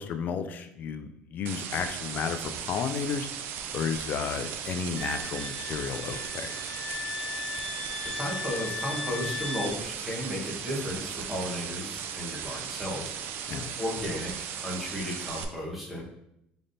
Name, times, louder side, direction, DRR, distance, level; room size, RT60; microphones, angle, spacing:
voice 1, 0.0-3.3 3.7-6.6 13.5-13.7, left 6 dB, 45° left, 8 dB, 0.4 m, -33 dB
sound 1, 1.5-15.5, right 8 dB, 65° right, 0.4 m, -37 dB
Wind instrument woodwind instrument, 4.9-9.7, left 4 dB, 25° left, 0.9 m, -37 dB
voice 2, 8.1-13.1 13.8-16.0, left 1 dB, 5° right, -4 dB, 1.1 m, -34 dB
3.9 x 3.4 x 2.6 m, 0.78 s
cardioid pair, 130°, 4 cm